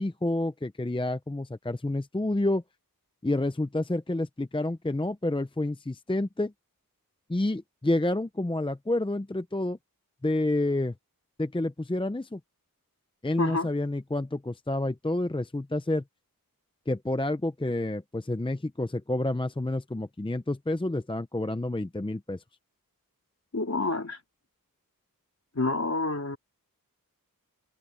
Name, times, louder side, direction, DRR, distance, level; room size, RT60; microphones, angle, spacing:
voice 1, 0.0-2.6 3.2-6.5 7.3-9.8 10.2-10.9 11.4-12.4 13.2-16.0 16.9-22.4, left 1 dB, 15° left, 0.7 m, -29 dB
voice 2, 13.4-13.7 23.5-24.2 25.5-26.4, left 3 dB, 45° left, 3.3 m, -28 dB
wide cardioid pair, 65°, 35 cm